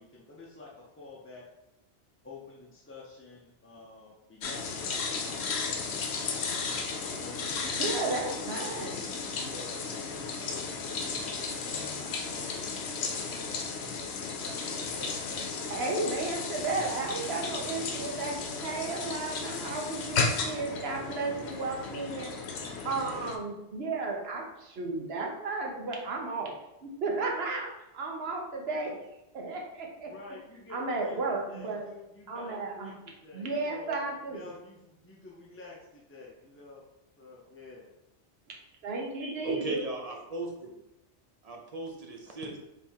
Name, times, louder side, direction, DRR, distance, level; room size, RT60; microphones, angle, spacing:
voice 1, 0.0-1.5 2.2-5.5 6.2-6.6 7.1-8.7 9.4-13.6 14.4-15.4 30.0-36.8 37.2-37.9, left 3 dB, 20° left, -4 dB, 0.4 m, -49 dB
sound 1, 4.4-23.4, left 4 dB, 70° left, 0.9 m, -34 dB
voice 2, 7.8-9.0 15.7-18.3 18.6-22.3 22.8-26.5 26.8-28.9 29.3-30.1 30.7-31.9 32.3-32.9 33.3-34.5 38.8-39.8, right 3 dB, 65° right, 0 dB, 1.1 m, -33 dB
voice 3, 39.4-40.7 41.4-42.5, right 2 dB, 40° right, 1 dB, 0.7 m, -36 dB
4.4 x 3.1 x 3.5 m, 0.90 s
omnidirectional pair, 1.1 m